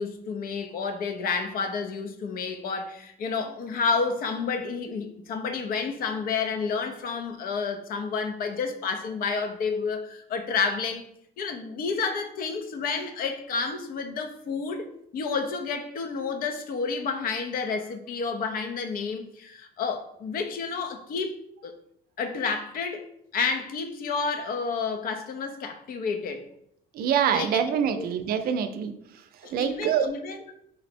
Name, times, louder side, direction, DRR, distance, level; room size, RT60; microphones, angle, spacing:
voice 1, 0.0-11.1 11.4-21.3 21.6-21.7 22.2-23.1 23.3-26.5 27.3-28.1 29.4-30.5, left 5 dB, 60° left, 6 dB, 0.6 m, -30 dB
voice 2, 26.9-28.9 29.5-30.1, right 8 dB, 60° right, 10 dB, 0.5 m, -25 dB
5.2 x 2.0 x 4.3 m, 0.72 s
cardioid pair, 110°, 17 cm